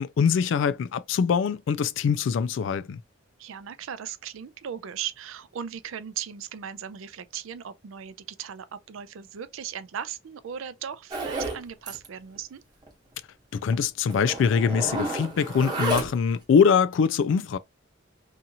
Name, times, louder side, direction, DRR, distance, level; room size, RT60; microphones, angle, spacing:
voice 1, 0.0-3.0 13.5-17.6, left 6 dB, 65° left, 0.3 m, -23 dB
voice 2, 3.4-12.6, right 8 dB, 85° right, 0.4 m, -37 dB
Zipper (clothing), 11.1-11.6 11.9-12.1 12.4-12.5 12.8-12.9 13.7-13.8 14.1-16.4, right 2 dB, 20° right, 0.9 m, -31 dB
2.7 x 2.4 x 2.7 m
head